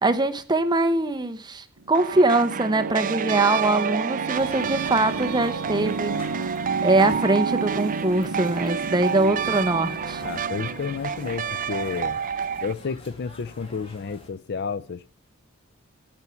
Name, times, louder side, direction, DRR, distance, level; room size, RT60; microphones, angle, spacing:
voice 1, 0.0-6.2 6.8-10.2, right 2 dB, 20° right, 0.9 m, -22 dB
sound 1, 1.8-12.8, right 4 dB, 80° right, 0.7 m, -33 dB
sound 2, 1.9-12.7, right 7 dB, 40° right, 0.5 m, -30 dB
sound 3, 4.3-14.3, left 1 dB, 30° left, 2.5 m, -45 dB
voice 2, 10.2-12.2 12.6-15.1, left 5 dB, 55° left, 0.5 m, -31 dB
9.7 x 9.0 x 7.0 m
head